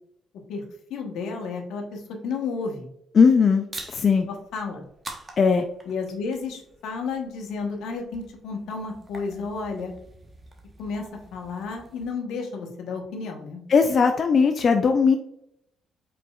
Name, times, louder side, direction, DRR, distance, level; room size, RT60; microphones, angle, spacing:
voice 1, 0.9-2.9 4.3-4.8 5.9-9.9 10.8-11.0 11.3-13.6, left 4 dB, 85° left, 2 dB, 1.1 m, -32 dB
voice 2, 3.1-3.7 3.9-4.3 5.4-5.7 13.7-15.2, left 5 dB, 50° left, 6 dB, 0.4 m, -18 dB
sound 1, 3.7-12.1, right 2 dB, 30° right, 1.0 m, -46 dB
5.2 x 4.1 x 2.3 m, 0.74 s
cardioid pair, 90°, 0 cm